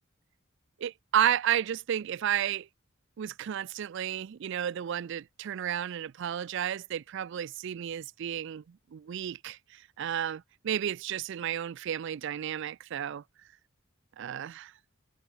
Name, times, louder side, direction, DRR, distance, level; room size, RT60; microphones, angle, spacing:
voice 1, 0.8-2.7 3.2-13.2 14.2-14.7, right 10 dB, 60° right, 0.3 m, -32 dB
head